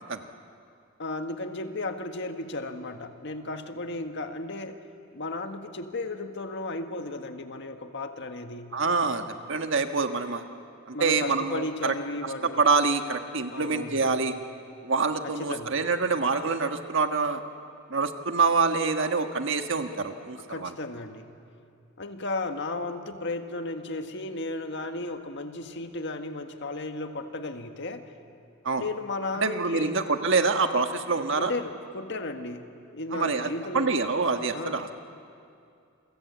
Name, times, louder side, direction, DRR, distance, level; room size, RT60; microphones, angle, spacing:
voice 1, 1.0-4.8 5.1-8.8 10.9-12.6 13.5-14.1 15.4-15.8 20.5-21.3 22.0-28.1 28.8-30.0 31.4-32.7 32.9-34.0 34.5-34.8, left 2 dB, 60° left, 6 dB, 1.7 m, -34 dB
voice 2, 8.7-10.4 10.9-11.9 12.2-14.3 14.8-17.4 17.9-20.7 28.6-28.8 29.4-31.5 33.1-33.5 33.7-35.0, right 4 dB, 65° right, 6 dB, 1.5 m, -26 dB
29.0 x 24.0 x 8.4 m, 2.5 s
head